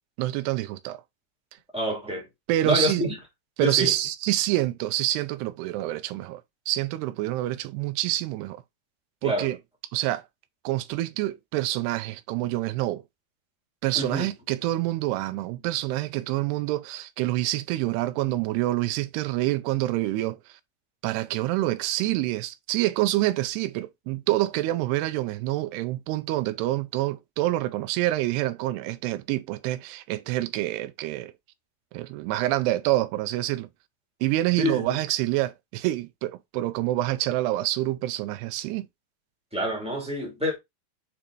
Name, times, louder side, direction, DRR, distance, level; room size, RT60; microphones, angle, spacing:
voice 1, 0.2-1.0 2.5-3.0 3.6-6.4 6.7-8.6 9.2-9.6 9.9-10.2 10.7-13.0 13.8-20.4 21.0-31.3 31.9-33.7 34.2-38.8, right 16 dB, 85° right, 2.6 m, -27 dB
voice 2, 1.7-2.3 2.6-3.2 3.6-3.9 9.2-9.5 13.9-14.3 34.6-34.9 39.5-40.6, equal, ahead, 1.3 m, -27 dB
8.6 x 4.4 x 2.5 m
omnidirectional pair, 4.7 m